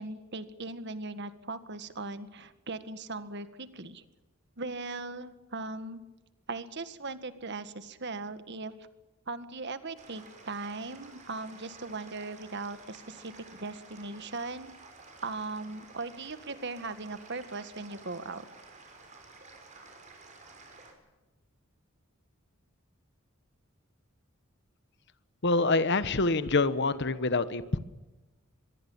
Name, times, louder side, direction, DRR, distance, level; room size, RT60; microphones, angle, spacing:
voice 1, 0.0-4.0 4.6-6.0 6.5-8.7 9.3-14.7 15.2-18.5, right 3 dB, 55° right, 11 dB, 1.8 m, -39 dB
sound 1, 10.0-20.9, right 3 dB, 35° right, 5.7 m, -52 dB
voice 2, 25.4-27.8, left 3 dB, 55° left, 14 dB, 1.2 m, -26 dB
24.5 x 22.0 x 7.2 m, 1.1 s
head